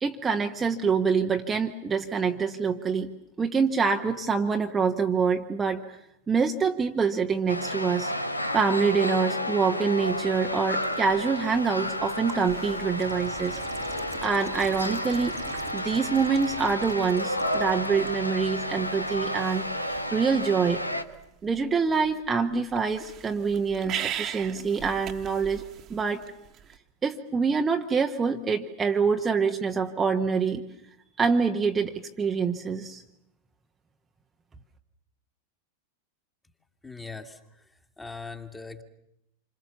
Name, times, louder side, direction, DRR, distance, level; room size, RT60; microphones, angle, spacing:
voice 1, 0.0-3.1 3.4-6.0 6.3-8.1 8.5-13.6 14.2-15.4 15.7-20.8 21.4-26.2 27.0-30.6 31.2-33.0, right 5 dB, 15° right, 4 dB, 1.2 m, -26 dB
sound 1, 7.5-21.0, left 1 dB, 85° left, 1.4 m, -31 dB
sound 2, 10.0-26.8, right 10 dB, 30° right, 1.5 m, -42 dB
voice 2, 36.8-37.4 38.0-38.8, left 4 dB, 10° left, 5 dB, 2.2 m, -40 dB
28.0 x 25.5 x 7.1 m, 0.83 s
figure-of-eight pair, 90°, 0 cm